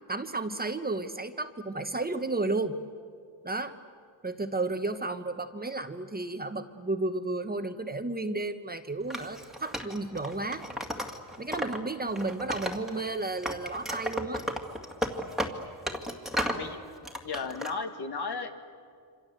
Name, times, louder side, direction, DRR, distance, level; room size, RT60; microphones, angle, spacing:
voice 1, 0.1-2.7 3.4-3.7 4.2-10.6 11.4-14.4, right 2 dB, 20° right, 8 dB, 1.2 m, -32 dB
Wood, 9.1-11.8 12.1-13.1 13.4-16.7 17.0-17.7, equal, ahead, 2.3 m, -34 dB
voice 2, 17.2-18.5, left 4 dB, 60° left, 6 dB, 2.3 m, -34 dB
27.5 x 26.5 x 8.0 m, 2.2 s
cardioid pair, 110°, 45 cm